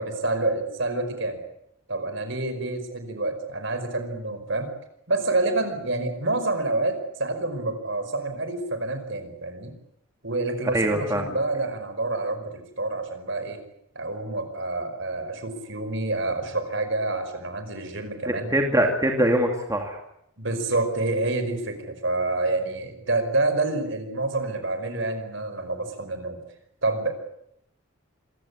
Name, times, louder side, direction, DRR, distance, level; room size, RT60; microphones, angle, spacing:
voice 1, 0.2-1.4 1.9-4.7 5.1-9.7 10.2-13.6 14.0-18.5 20.4-26.4 26.8-27.1, right 2 dB, 60° right, 8 dB, 5.2 m, -28 dB
voice 2, 10.7-11.3 18.3-20.0, right 1 dB, 15° right, 2 dB, 2.6 m, -23 dB
26.5 x 17.0 x 9.8 m, 0.79 s
head